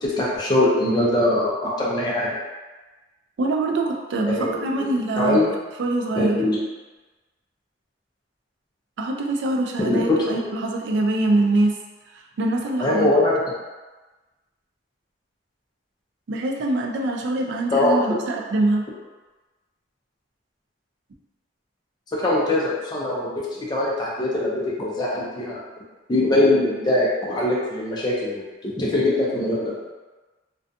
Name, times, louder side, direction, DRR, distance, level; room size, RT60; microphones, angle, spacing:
voice 1, 0.0-2.3 4.3-4.6 5.2-5.5 6.2-6.6 9.8-10.5 12.8-13.4 17.7-18.0 22.2-25.6 26.1-29.8, left 1 dB, 20° left, -5 dB, 0.4 m, -22 dB
voice 2, 3.4-5.4 5.8-6.4 9.0-11.8 12.4-13.1 16.3-18.9, right 2 dB, 65° right, 1 dB, 0.4 m, -23 dB
2.5 x 2.2 x 2.5 m, 1.2 s
head